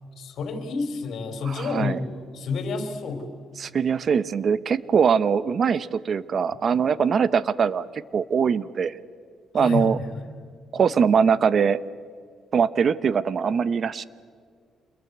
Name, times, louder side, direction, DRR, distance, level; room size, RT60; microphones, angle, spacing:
voice 1, 0.2-3.3 9.5-10.1, left 4 dB, 70° left, 7 dB, 3.9 m, -29 dB
voice 2, 1.4-2.0 3.6-8.9 9.5-10.0 10.7-11.8 12.5-14.1, right 6 dB, 50° right, 16 dB, 1.0 m, -22 dB
27.5 x 22.0 x 8.2 m, 2.1 s
cardioid pair, 90°, 0 cm